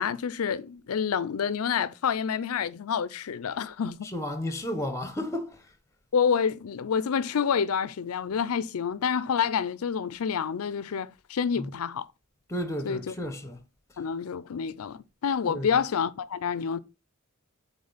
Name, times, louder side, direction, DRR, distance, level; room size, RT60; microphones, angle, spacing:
voice 1, 0.0-4.1 6.1-12.1 12.8-13.1 14.0-16.8, left 7 dB, 70° left, 0.4 m, -28 dB
voice 2, 4.0-5.7 11.6-11.7 12.5-13.6 15.5-15.8, left 1 dB, 15° left, 1.0 m, -33 dB
8.7 x 3.7 x 4.0 m
head